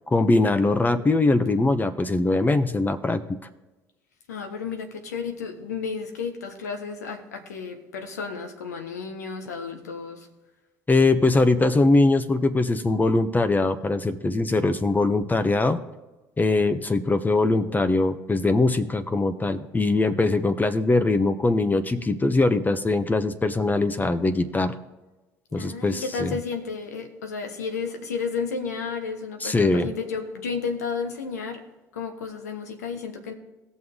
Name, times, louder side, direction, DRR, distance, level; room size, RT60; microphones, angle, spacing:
voice 1, 0.1-3.4 10.9-15.8 16.4-24.7 25.5-26.3 29.4-29.9, left 2 dB, 20° left, 10 dB, 1.0 m, -22 dB
voice 2, 4.3-10.3 25.6-31.6 31.9-33.3, left 5 dB, 90° left, 5 dB, 1.2 m, -32 dB
18.5 x 6.3 x 3.7 m, 1.1 s
hypercardioid pair, 65°, 9 cm